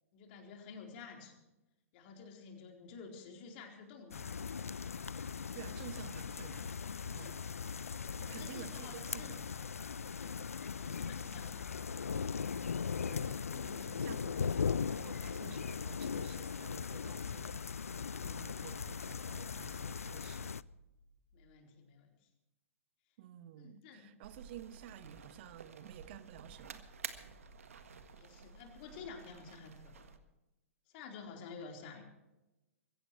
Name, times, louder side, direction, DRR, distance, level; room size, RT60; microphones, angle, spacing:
voice 1, 0.1-1.4 1.9-4.3 7.1-7.4 7.8-9.4 10.2-10.4 10.8-11.6 13.4-14.0 18.6-19.0 21.3-22.1 23.6-24.1 28.1-30.1 30.9-32.1, left 5 dB, 45° left, 4.2 m, -51 dB
sound 1, 4.1-20.6, left 6 dB, 80° left, 0.4 m, -39 dB
voice 2, 5.2-6.7 7.1-7.4 8.2-9.5 13.1-17.6 17.9-20.5 23.2-26.9, right 11 dB, 50° right, 1.3 m, -52 dB
sound 2, 17.8-21.5, left 2 dB, 20° left, 5.3 m, -64 dB
sound 3, 24.2-30.2, right 6 dB, 70° right, 1.6 m, -51 dB
23.5 x 16.0 x 3.2 m
figure-of-eight pair, 110°, 8 cm